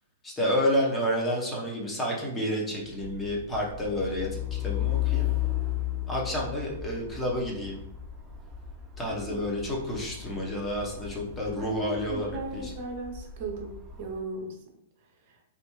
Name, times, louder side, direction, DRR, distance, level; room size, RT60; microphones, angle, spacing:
voice 1, 0.2-5.3 6.1-7.8 9.0-12.3 12.5-12.7, equal, 15° left, -3 dB, 1.0 m, -30 dB
Truck, 2.9-14.2, left 13 dB, 15° right, 0.7 m, -35 dB
voice 2, 9.1-9.4 11.6-14.6 15.3-15.4, right 2 dB, 55° right, 1 dB, 0.8 m, -37 dB
3.4 x 2.5 x 3.1 m, 0.78 s
hypercardioid pair, 110°, 0 cm